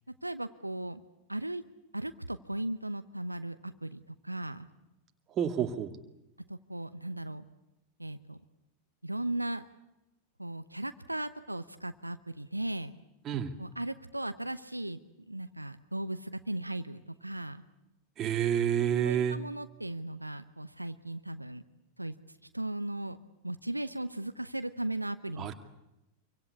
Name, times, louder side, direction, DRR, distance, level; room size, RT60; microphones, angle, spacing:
voice 1, 0.2-1.0 1.3-1.6 1.9-4.7 6.5-7.4 8.0-8.4 9.0-9.6 10.4-12.9 13.6-15.0 15.3-17.6 19.0-21.6 22.0-22.1 22.5-23.2 23.4-25.5, right 1 dB, 85° right, 11 dB, 0.9 m, -37 dB
voice 2, 5.3-6.0 13.2-13.6 18.2-19.4 25.4-25.5, right 9 dB, 30° right, 6 dB, 2.3 m, -29 dB
26.0 x 24.0 x 8.5 m, 0.92 s
figure-of-eight pair, 90°, 0 cm